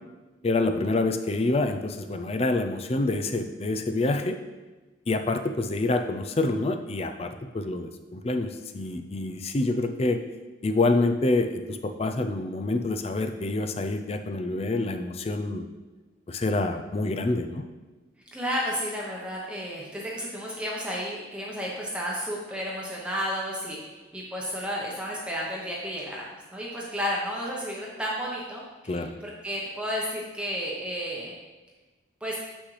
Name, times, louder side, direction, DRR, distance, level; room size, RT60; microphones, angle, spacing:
voice 1, 0.4-4.4 5.1-10.2 10.6-15.7 16.3-17.6 28.9-29.1, left 2 dB, 30° left, 6 dB, 0.4 m, -27 dB
voice 2, 18.3-26.2 26.5-31.3 32.2-32.4, equal, 5° right, -4 dB, 0.9 m, -32 dB
8.1 x 6.1 x 3.2 m, 1.2 s
head